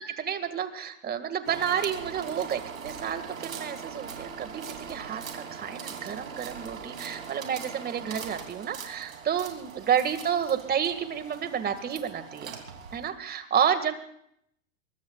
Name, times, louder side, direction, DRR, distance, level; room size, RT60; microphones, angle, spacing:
voice 1, 0.0-12.5 12.9-14.0, right 8 dB, 25° right, 9 dB, 1.9 m, -30 dB
sound 1, 1.4-13.1, right 6 dB, 85° right, 3.0 m, -41 dB
23.5 x 22.0 x 2.4 m, 0.69 s
hypercardioid pair, 110°, 39 cm